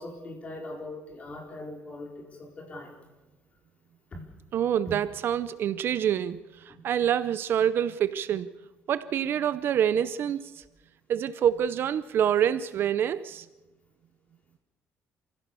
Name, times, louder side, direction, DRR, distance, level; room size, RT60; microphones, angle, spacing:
voice 1, 0.0-2.9 4.1-4.2 4.9-5.0, left 1 dB, 25° left, 4.8 m, -40 dB
voice 2, 4.5-8.5 8.9-10.6 11.1-13.5, right 9 dB, 50° right, 0.6 m, -26 dB
27.5 x 16.0 x 6.9 m
cardioid pair, 170°, 5 cm